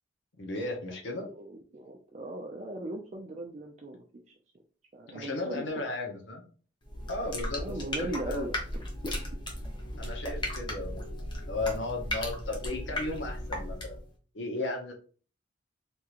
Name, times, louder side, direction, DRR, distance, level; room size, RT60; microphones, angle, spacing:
voice 1, 0.4-1.3 5.1-6.4 7.1-8.5 10.0-11.1 11.5-14.0 14.3-14.9, left 2 dB, 80° left, 2 dB, 0.8 m, -35 dB
voice 2, 1.1-4.0 4.9-5.6 7.5-8.5, right 2 dB, 35° right, 1 dB, 0.4 m, -38 dB
sound 1, 6.8-14.1, left 1 dB, 25° left, 0.7 m, -36 dB
3.5 x 2.9 x 2.4 m, 0.39 s
head